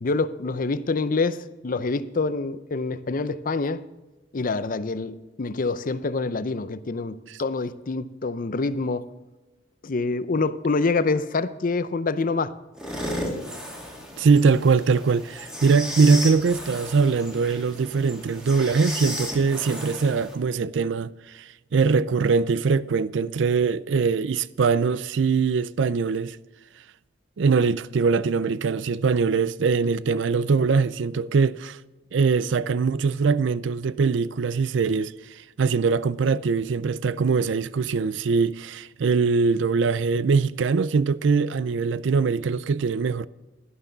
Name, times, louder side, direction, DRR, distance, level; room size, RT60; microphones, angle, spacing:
voice 1, 0.0-3.8 4.3-9.0 9.8-12.5, left 3 dB, 45° left, 0.6 m, -26 dB
sound 1, 12.8-20.4, equal, 5° right, 2.3 m, -34 dB
voice 2, 14.2-26.4 27.4-31.8 32.1-35.1 35.6-43.3, right 5 dB, 70° right, 0.4 m, -22 dB
11.5 x 11.5 x 4.0 m
head